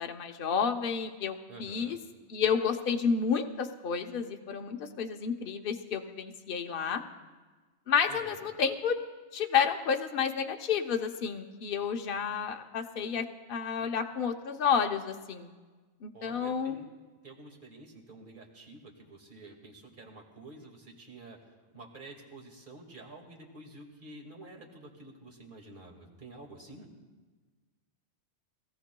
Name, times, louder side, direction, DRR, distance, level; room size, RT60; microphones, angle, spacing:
voice 1, 0.0-2.0 2.3-7.0 7.9-9.0 9.3-15.5 16.0-16.7, left 6 dB, 55° left, 4 dB, 0.9 m, -30 dB
voice 2, 1.5-2.0 8.1-8.5 13.8-13.9 16.1-16.9 17.2-21.4 21.7-26.9, right 2 dB, 45° right, 0 dB, 2.1 m, -49 dB
23.5 x 17.5 x 2.2 m, 1.3 s
omnidirectional pair, 1.2 m